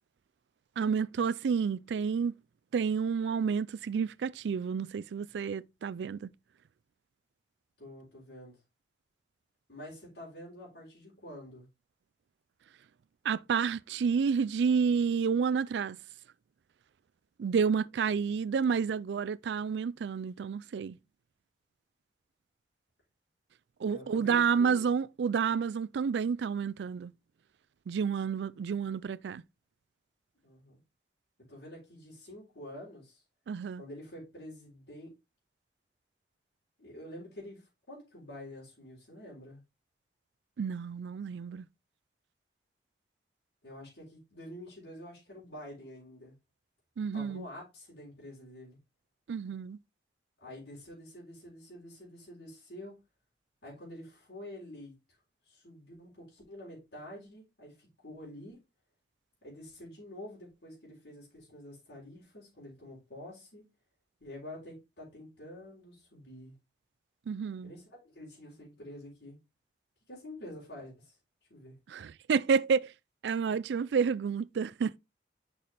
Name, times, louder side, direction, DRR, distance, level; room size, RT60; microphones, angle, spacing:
voice 1, 0.8-2.3 2.7-6.3 13.2-16.0 17.4-21.0 23.8-27.1 27.9-29.4 33.5-33.8 40.6-41.6 47.0-47.4 49.3-49.8 67.3-67.7 71.9-72.9 73.2-75.0, right 6 dB, 90° right, 0.4 m, -30 dB
voice 2, 7.8-8.6 9.7-11.7 23.8-24.8 30.4-30.8 31.5-33.2 33.8-35.2 36.8-39.6 43.6-46.3 47.1-48.8 50.4-53.0 53.6-55.2 55.5-58.6 59.4-63.6 64.2-66.6 67.6-69.4 70.1-71.2 71.5-71.8, left 1 dB, 80° left, 3.9 m, -48 dB
6.6 x 5.6 x 3.4 m
head